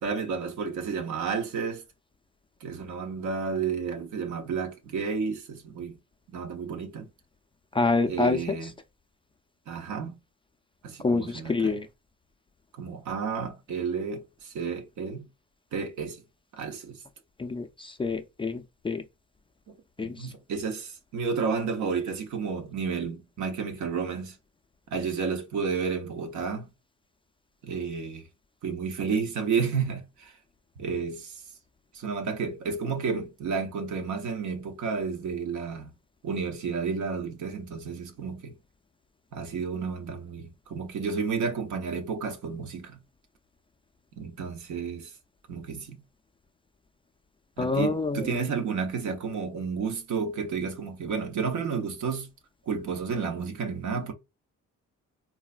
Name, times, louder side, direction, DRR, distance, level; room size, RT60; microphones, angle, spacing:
voice 1, 0.0-1.8 2.6-6.0 6.3-7.1 8.1-8.7 9.7-10.1 10.8-11.8 12.8-15.3 15.7-16.2 16.5-17.0 19.7-24.4 24.9-26.7 27.6-28.3 28.6-30.3 30.8-31.4 31.9-35.9 36.2-38.6 39.3-43.0 44.2-45.1 45.5-46.0 47.6-52.3 52.7-54.1, right 5 dB, 70° right, 0.8 m, -31 dB
voice 2, 7.7-8.4 11.0-11.9 17.4-19.0 20.0-20.3 47.6-48.4, left 3 dB, 20° left, 0.3 m, -27 dB
3.8 x 2.1 x 2.4 m
cardioid pair, 90°, 30 cm